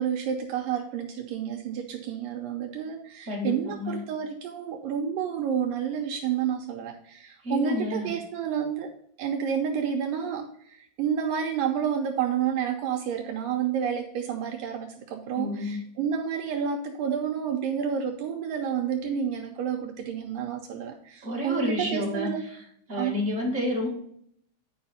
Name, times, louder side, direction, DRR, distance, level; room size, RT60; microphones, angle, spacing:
voice 1, 0.0-8.9 9.2-22.5 22.9-23.2, right 8 dB, 80° right, 3 dB, 2.1 m, -30 dB
voice 2, 3.3-4.0 7.4-8.1 15.3-15.8 21.2-22.6 22.9-23.9, left 1 dB, 35° right, -3 dB, 1.2 m, -30 dB
9.5 x 5.0 x 4.1 m, 0.69 s
omnidirectional pair, 4.4 m